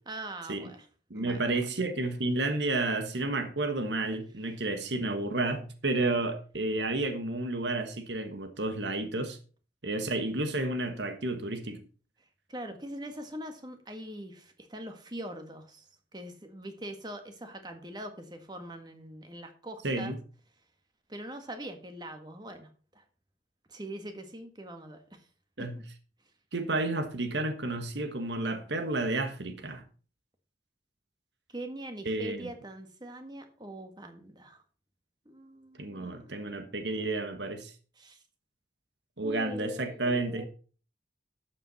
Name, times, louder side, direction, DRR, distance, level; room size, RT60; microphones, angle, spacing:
voice 1, 0.0-0.9 1.1-1.4 12.5-15.8 16.1-20.2 21.1-22.7 22.9-23.0 23.7-25.2 25.7-25.8 31.5-34.6 35.2-36.4 38.0-38.2 39.2-40.5, right 1 dB, 25° right, 1.7 m, -42 dB
voice 2, 1.1-9.4 9.8-11.8 19.8-20.2 25.6-25.8 26.5-29.8 32.0-32.5 35.8-37.7 39.2-40.5, right 2 dB, 80° right, 1.5 m, -31 dB
12.5 x 7.5 x 4.2 m
head